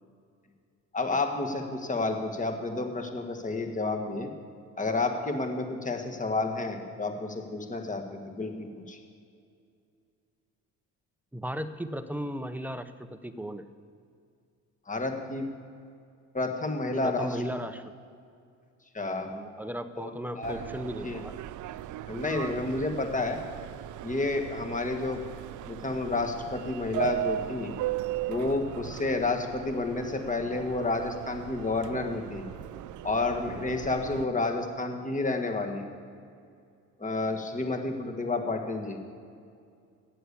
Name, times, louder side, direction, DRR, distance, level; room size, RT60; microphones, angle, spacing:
voice 1, 0.9-4.3 4.8-9.0 14.9-15.4 16.3-17.3 18.9-19.3 20.0-20.6 21.0-21.2 22.1-23.4 24.0-25.2 25.7-27.7 28.3-32.4 33.0-35.8 37.0-39.0, left 3 dB, 20° left, 4 dB, 1.6 m, -30 dB
voice 2, 11.3-13.7 17.0-17.9 19.3-21.4, equal, 5° right, 11 dB, 0.6 m, -36 dB
Subway metro underground, 20.4-34.2, right 13 dB, 55° right, 0.5 m, -37 dB
8.3 x 7.8 x 8.4 m, 2.4 s
supercardioid pair, 70°, 37 cm